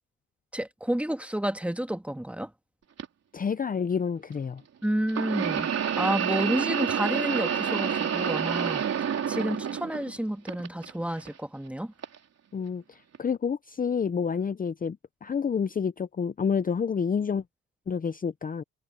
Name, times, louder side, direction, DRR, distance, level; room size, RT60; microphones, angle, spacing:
voice 1, 0.5-2.5 4.8-5.7 6.0-8.8 9.3-11.9, right 1 dB, 5° right, 1.7 m, -30 dB
sound 1, 3.0-3.1 5.1-10.2 10.5-11.3 12.0-12.2 13.1-13.2, right 8 dB, 55° right, 4.2 m, -28 dB
voice 2, 3.3-4.6 12.5-17.4 17.9-18.6, left 6 dB, 30° left, 0.7 m, -29 dB
cardioid pair, 90°, 30 cm